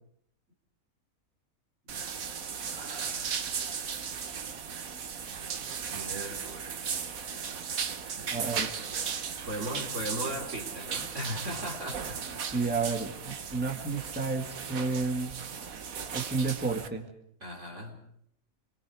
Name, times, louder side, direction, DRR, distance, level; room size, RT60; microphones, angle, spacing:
Person Showering, 1.9-16.9, right 6 dB, 70° right, 1.6 m, -36 dB
voice 1, 2.6-4.0 5.9-6.8 8.2-8.5 9.5-12.4 13.8-13.9 17.4-18.0, equal, 55° right, 1 dB, 4.6 m, -39 dB
voice 2, 8.3-8.7 12.5-15.3 15.6-15.7 16.1-17.1, right 4 dB, 5° right, 0 dB, 2.0 m, -31 dB
29.0 x 22.5 x 5.0 m, 0.70 s
omnidirectional pair, 1.5 m